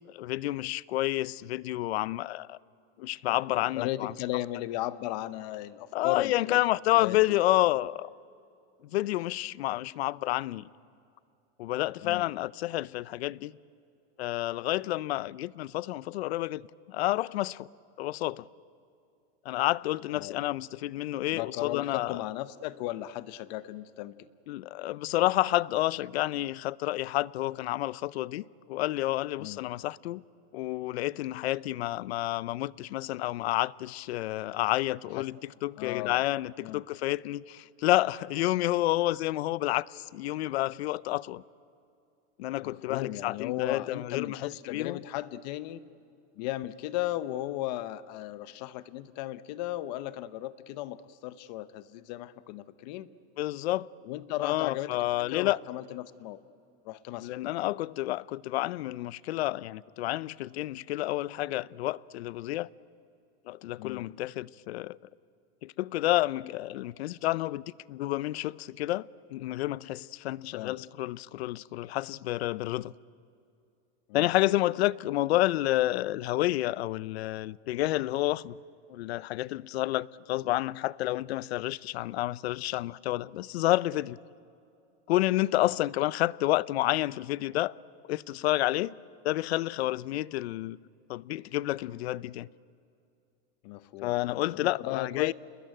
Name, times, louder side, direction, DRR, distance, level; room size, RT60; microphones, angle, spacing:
voice 1, 0.1-2.6 3.0-4.1 5.9-8.1 8.9-10.7 11.6-13.5 14.2-16.6 16.9-17.7 18.0-18.5 19.5-22.2 24.5-30.2 30.5-35.4 35.6-41.4 42.4-45.0 53.4-53.9 54.4-55.6 57.2-62.7 63.5-65.0 65.6-67.6 67.9-72.9 74.1-78.6 78.9-84.2 85.1-87.7 88.1-88.9 89.2-90.8 91.1-92.5 94.0-95.3, left 16 dB, 85° left, 0.6 m, -29 dB
voice 2, 3.7-6.6 6.9-7.4 12.0-12.3 20.1-20.4 21.3-24.1 29.4-29.7 35.1-35.3 35.8-36.2 36.6-36.8 42.6-45.8 46.4-53.1 54.0-56.4 56.8-57.3 63.8-64.1 70.5-70.8 74.1-74.4 85.6-85.7 93.6-95.3, left 15 dB, 45° left, 0.8 m, -36 dB
28.5 x 21.0 x 9.1 m
supercardioid pair, 170°, 31 cm